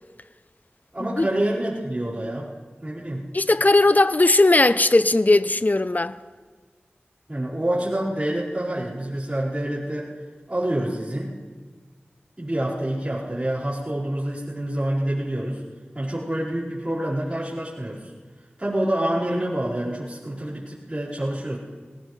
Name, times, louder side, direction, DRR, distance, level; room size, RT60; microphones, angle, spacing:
voice 1, 0.9-2.5 2.8-3.2 7.3-10.1 10.5-11.3 12.4-15.6 15.9-18.1 18.6-21.6, right 1 dB, 30° right, 4.9 m, -27 dB
voice 2, 3.3-6.2, left 2 dB, 45° left, 0.6 m, -18 dB
20.0 x 19.0 x 3.3 m
wide cardioid pair, 40°, 4 cm